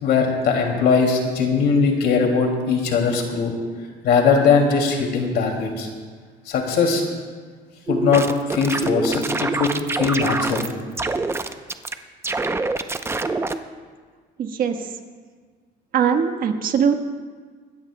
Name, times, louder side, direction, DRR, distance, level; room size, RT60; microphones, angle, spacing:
voice 1, 0.0-3.5 4.0-5.9 6.5-7.0 7.9-10.7, left 5 dB, 70° left, 2 dB, 2.4 m, -20 dB
sound 1, 7.9-10.7 11.0-11.9 12.2-13.6, right 3 dB, 15° right, 0.6 m, -25 dB
voice 2, 14.4-14.7 15.9-17.0, right 7 dB, 55° right, 6 dB, 1.3 m, -20 dB
26.0 x 13.5 x 2.2 m, 1.6 s
cardioid pair, 110°, 17 cm